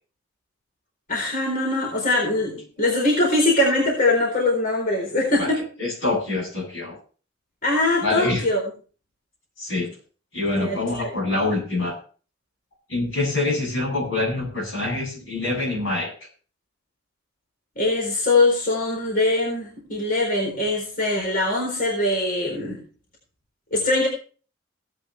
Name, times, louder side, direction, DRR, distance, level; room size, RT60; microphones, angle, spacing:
voice 1, 1.1-5.6 7.6-8.6 10.5-11.1 17.8-22.8 23.7-24.1, left 2 dB, 45° left, -1 dB, 4.2 m, -22 dB
voice 2, 5.8-7.0 8.0-8.4 9.6-9.9 10.3-12.0 12.9-16.1, left 2 dB, 70° left, 0 dB, 8.0 m, -25 dB
17.5 x 9.5 x 3.4 m, 0.40 s
head